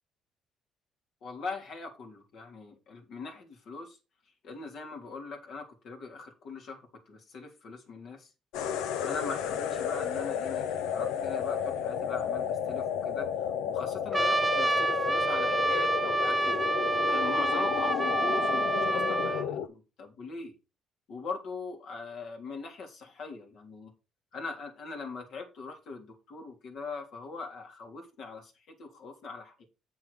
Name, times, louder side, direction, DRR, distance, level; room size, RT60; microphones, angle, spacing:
voice 1, 1.2-4.0 4.4-6.8 7.1-8.3 9.0-16.6 17.1-20.6 21.1-23.9 24.3-29.6, left 4 dB, 70° left, 2 dB, 3.3 m, -41 dB
sound 1, 8.5-19.7, left 8 dB, 85° left, 0.8 m, -32 dB
Trumpet, 14.1-19.5, right 2 dB, 15° right, 0.8 m, -28 dB
7.6 x 7.0 x 5.0 m, 0.30 s
supercardioid pair, 70°, 0 cm